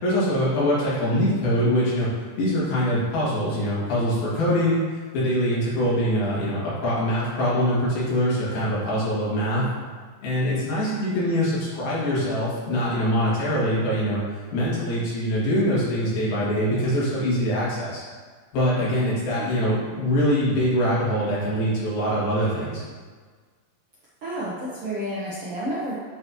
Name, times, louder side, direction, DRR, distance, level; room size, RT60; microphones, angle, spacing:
voice 1, 0.0-2.1 2.4-4.8 5.1-9.7 10.2-14.2 14.5-18.0 18.5-22.8, equal, 85° left, -7 dB, 4.2 m, -23 dB
voice 2, 24.2-25.9, right 1 dB, 65° right, -8 dB, 1.5 m, -30 dB
11.0 x 5.9 x 3.0 m, 1.5 s
omnidirectional pair, 4.2 m